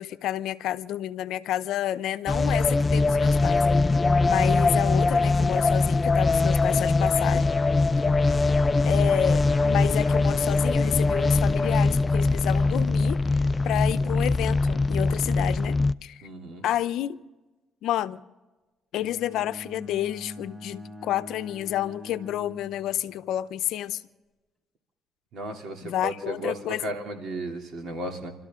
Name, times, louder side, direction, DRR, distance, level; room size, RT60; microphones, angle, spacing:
voice 1, 0.0-3.8 4.2-7.5 8.8-15.8 16.0-16.3 16.6-17.2 17.8-18.2 18.9-24.0 25.8-26.9, left 12 dB, 75° left, 0.7 m, -30 dB
sound 1, 2.3-15.9, left 3 dB, 25° left, 0.4 m, -22 dB
voice 2, 7.9-8.3 14.1-14.3 16.2-16.6 25.3-28.3, right 1 dB, 65° right, 2.9 m, -35 dB
Bowed string instrument, 19.0-23.2, left 1 dB, ahead, 5.2 m, -44 dB
28.5 x 13.0 x 3.7 m
supercardioid pair, 80°, 0 cm